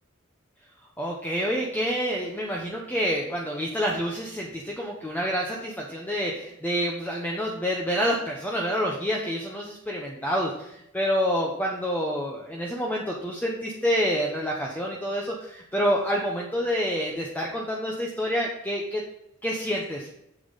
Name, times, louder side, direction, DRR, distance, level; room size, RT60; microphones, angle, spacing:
voice 1, 1.0-19.0 19.4-20.1, equal, 10° left, -2 dB, 0.9 m, -28 dB
7.2 x 7.0 x 4.0 m, 0.83 s
head